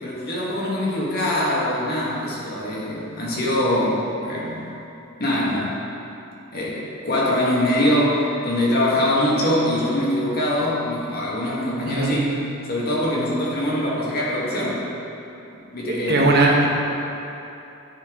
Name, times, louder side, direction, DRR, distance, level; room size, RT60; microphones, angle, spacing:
voice 1, 0.0-4.6 5.2-5.7 6.5-12.2 12.7-14.8 15.7-16.2, left 1 dB, 50° left, -5 dB, 1.4 m, -23 dB
voice 2, 11.9-12.3 15.9-16.7, right 2 dB, 50° right, -1 dB, 0.9 m, -19 dB
10.0 x 4.4 x 3.6 m, 2.9 s
head